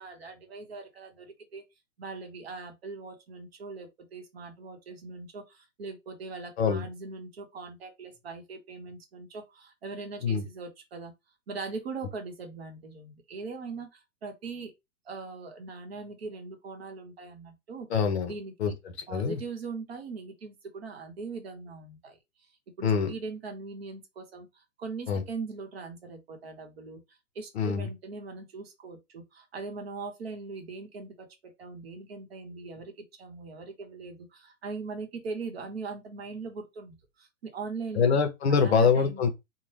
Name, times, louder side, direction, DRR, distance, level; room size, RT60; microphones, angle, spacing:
voice 1, 0.0-1.6 2.0-11.1 11.5-14.7 15.1-17.9 18.3-18.8 19.1-22.2 22.8-38.2 38.5-39.2, right 4 dB, 45° right, 0.8 m, -41 dB
voice 2, 17.9-18.3 18.6-18.7 19.1-19.4 22.8-23.1 25.1-25.2 27.5-27.9 37.9-39.3, left 6 dB, 50° left, 0.8 m, -24 dB
2.8 x 2.1 x 3.1 m
hypercardioid pair, 165°, 41 cm